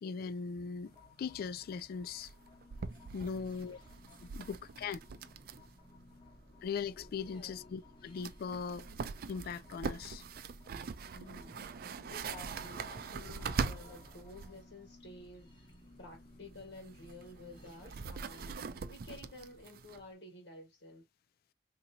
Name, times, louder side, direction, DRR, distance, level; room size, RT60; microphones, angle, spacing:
voice 1, 0.0-2.3 3.1-3.8 4.3-5.0 6.6-8.9 9.3-10.2, left 6 dB, 55° left, 0.3 m, -39 dB
sound 1, 0.8-19.6, left 1 dB, 25° left, 1.1 m, -57 dB
sound 2, 0.9-1.0 1.2-1.3 1.6-1.8 2.2-5.8 6.0-6.1 7.8-7.9 8.2-14.6 16.4-20.1, right 5 dB, 55° right, 0.4 m, -42 dB
voice 2, 3.2-3.6 7.3-7.6 11.1-11.6 12.1-15.5 16.0-21.0, left 2 dB, 75° left, 1.4 m, -52 dB
3.8 x 2.8 x 2.6 m
head